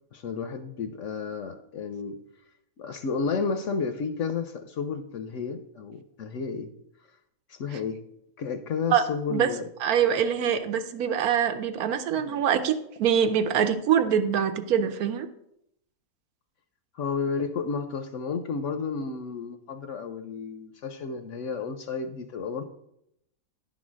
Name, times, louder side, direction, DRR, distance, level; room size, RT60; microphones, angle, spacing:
voice 1, 0.1-2.2 2.8-6.7 7.5-8.0 8.4-9.7 12.1-12.4 16.9-22.6, left 5 dB, 65° left, 8 dB, 0.8 m, -32 dB
voice 2, 9.8-15.3, right 8 dB, 75° right, 8 dB, 1.1 m, -24 dB
10.0 x 3.9 x 6.1 m, 0.77 s
omnidirectional pair, 1.6 m